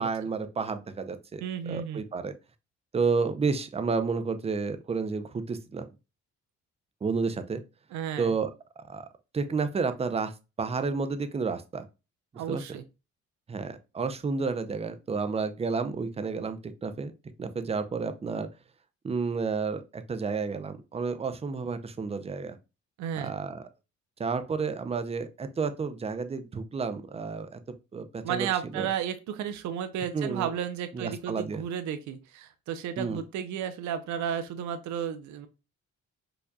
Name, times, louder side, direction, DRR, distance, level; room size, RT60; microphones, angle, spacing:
voice 1, 0.0-2.3 2.9-5.9 7.0-7.6 8.2-8.5 8.9-9.1 9.3-11.9 12.5-12.6 13.5-17.1 17.4-18.5 19.0-22.6 23.2-23.7 24.2-27.6 27.9-28.5 28.7-28.9 30.1-30.5 30.9-31.6 33.0-33.2, right 4 dB, 20° right, 10 dB, 0.4 m, -31 dB
voice 2, 1.4-2.0 7.9-8.3 12.3-12.8 23.0-23.3 28.2-35.5, right 9 dB, 70° right, 9 dB, 0.5 m, -33 dB
4.7 x 2.5 x 2.2 m, 0.28 s
cardioid pair, 90°, 30 cm